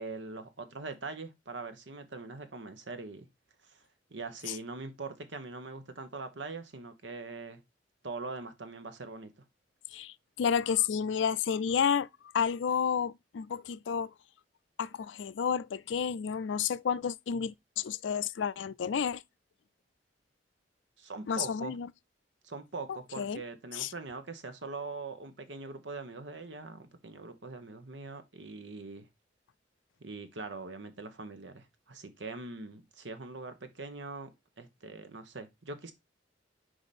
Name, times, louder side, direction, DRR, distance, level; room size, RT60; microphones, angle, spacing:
voice 1, 0.0-3.3 3.6-3.8 4.1-7.6 8.0-9.3 21.0-21.8 22.4-29.1 30.0-34.3 34.6-35.9, right 3 dB, 80° right, 1.2 m, -42 dB
voice 2, 9.9-12.1 12.3-14.1 14.8-19.2 21.3-21.9 23.2-23.4 23.7-23.9, left 7 dB, 85° left, 0.4 m, -31 dB
5.0 x 4.8 x 4.2 m
head